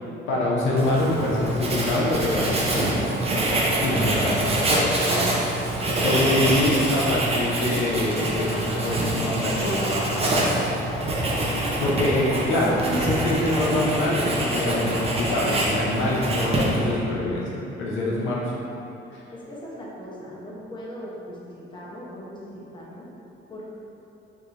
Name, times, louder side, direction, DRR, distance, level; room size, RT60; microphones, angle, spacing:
voice 1, 0.3-2.9 3.8-4.4 6.0-10.6 11.8-18.5 19.1-19.2, left 1 dB, 80° left, -5 dB, 0.7 m, -25 dB
Writing, 0.8-17.0, right 1 dB, 30° right, 0.7 m, -25 dB
sound 1, 1.9-6.4, right 2 dB, 55° right, 1.5 m, -40 dB
voice 2, 3.6-4.2 4.5-6.5 12.3-12.8 19.3-23.1 23.5-23.7, equal, 25° left, -5 dB, 0.8 m, -39 dB
4.7 x 2.6 x 2.5 m, 2.9 s
cardioid pair, 90°, 20 cm